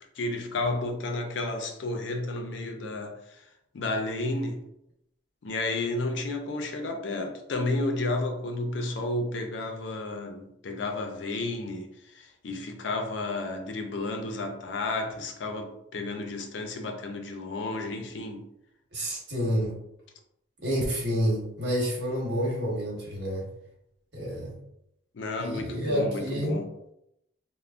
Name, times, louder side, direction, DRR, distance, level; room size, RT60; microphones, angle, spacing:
voice 1, 0.2-3.5 3.7-4.6 5.4-18.5 25.1-26.7, left 2 dB, 65° left, 0.4 m, -32 dB
voice 2, 18.9-19.8 20.6-23.5 24.1-24.6 25.4-26.6, equal, 55° right, 1.2 m, -29 dB
3.3 x 2.0 x 2.4 m
head